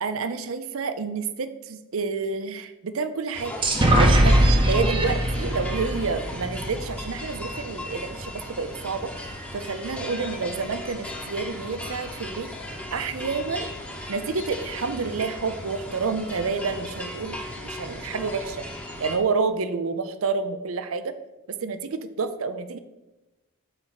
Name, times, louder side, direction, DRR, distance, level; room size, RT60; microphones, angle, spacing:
voice 1, 0.0-3.6 3.8-4.4 4.7-9.1 9.5-12.5 12.9-13.7 14.1-18.7 19.0-21.1 21.5-22.8, right 4 dB, 65° right, 11 dB, 0.5 m, -29 dB
sound 1, 3.3-19.2, left 1 dB, 5° left, 0.9 m, -36 dB
sound 2, 3.6-7.3, right 1 dB, 20° right, 0.8 m, -21 dB
6.6 x 4.5 x 5.8 m, 1.1 s
head